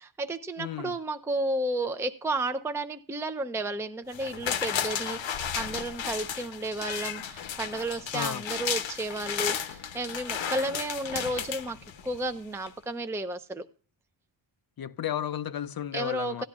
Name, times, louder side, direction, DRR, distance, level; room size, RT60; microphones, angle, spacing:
voice 1, 0.0-11.8 12.0-13.7 15.9-16.4, right 2 dB, 5° right, 0.5 m, -32 dB
voice 2, 0.6-1.0 8.1-8.4 14.8-16.4, left 10 dB, 50° left, 0.5 m, -33 dB
sound 1, 4.1-12.3 12.7-12.8, left 8 dB, 70° left, 0.9 m, -33 dB
17.0 x 11.0 x 2.4 m
wide cardioid pair, 100°, 47 cm